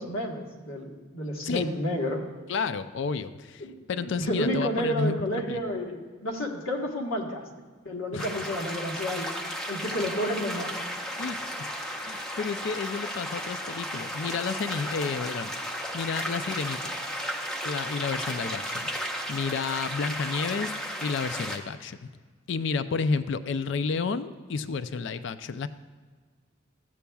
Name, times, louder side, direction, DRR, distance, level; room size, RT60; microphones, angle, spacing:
voice 1, 0.0-2.2 3.6-3.7 4.0-7.4 7.8-9.3 9.7-10.8, equal, 80° left, 0 dB, 1.3 m, -30 dB
voice 2, 2.5-5.6 8.1-8.3 11.2-11.7 12.0-16.9 17.6-20.7 21.0-22.1 22.5-25.7, left 5 dB, 60° left, 12 dB, 0.4 m, -31 dB
sound 1, 8.2-21.6, equal, 5° left, 0.6 m, -34 dB
13.5 x 8.4 x 2.3 m, 1.5 s
head